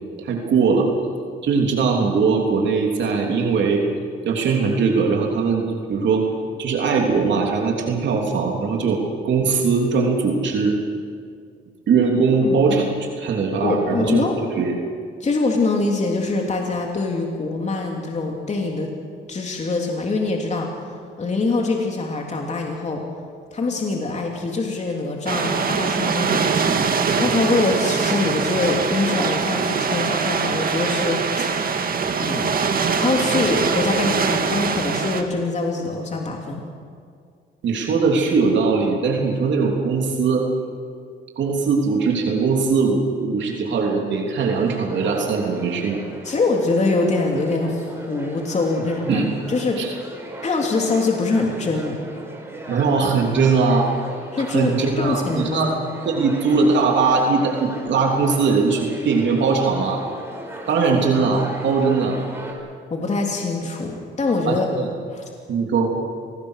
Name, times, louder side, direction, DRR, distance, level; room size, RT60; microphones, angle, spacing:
voice 1, 0.2-0.9 1.4-3.8 4.2-6.3 6.6-10.8 11.9-12.8 13.2-14.2 14.6-14.7 37.6-40.5 41.4-46.0 49.1-49.3 49.8-49.9 52.7-53.9 54.5-55.7 56.0-60.0 60.7-62.2 64.5-64.9 65.5-65.9, right 4 dB, 65° right, 0 dB, 3.3 m, -20 dB
voice 2, 12.4-12.9 13.6-14.3 15.2-18.9 19.3-20.7 21.2-23.0 23.5-31.5 32.2-32.7 33.0-36.6 46.2-50.0 50.4-52.0 54.3-55.8 62.9-64.7 65.1-65.2, left 3 dB, 35° left, 1 dB, 3.1 m, -24 dB
sound 1, 25.3-35.2, right 5 dB, 45° right, 1.9 m, -22 dB
sound 2, 44.5-62.5, right 1 dB, 10° right, 5.9 m, -37 dB
26.0 x 19.5 x 6.6 m, 2.2 s
cardioid pair, 90°, 20 cm